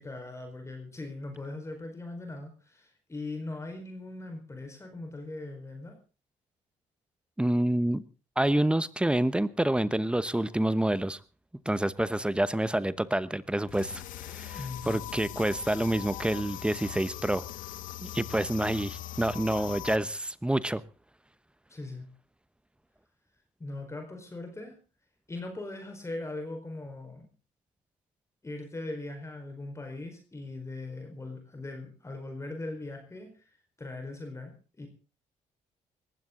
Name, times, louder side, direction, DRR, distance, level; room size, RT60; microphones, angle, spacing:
voice 1, 0.0-6.0 14.5-15.0 21.7-22.1 23.6-24.8 25.3-27.3 28.4-34.9, left 2 dB, 20° left, 4.6 m, -40 dB
voice 2, 7.4-8.0 8.4-11.2 11.6-14.6 14.9-17.4 18.0-20.8, right 1 dB, 5° right, 1.0 m, -28 dB
sound 1, 13.7-20.0, left 14 dB, 80° left, 1.6 m, -41 dB
20.0 x 15.5 x 3.9 m
cardioid pair, 90°, 14 cm